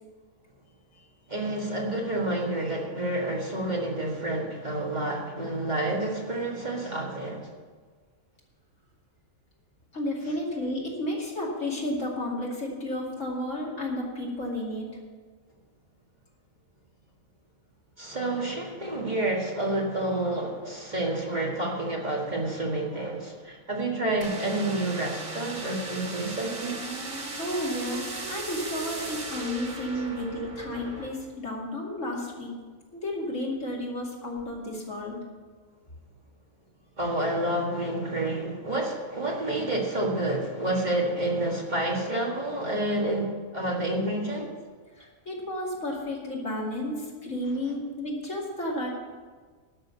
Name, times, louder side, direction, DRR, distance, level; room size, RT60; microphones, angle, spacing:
voice 1, 1.3-7.5 18.0-26.8 37.0-44.5, right 1 dB, 35° right, -2 dB, 1.8 m, -29 dB
voice 2, 9.9-14.9 27.4-32.5 32.9-35.2 45.0-48.9, left 1 dB, 65° left, -3 dB, 2.8 m, -32 dB
sound 1, 24.2-31.1, right 2 dB, 65° right, 2.1 m, -36 dB
12.0 x 6.5 x 8.4 m, 1.5 s
omnidirectional pair, 1.4 m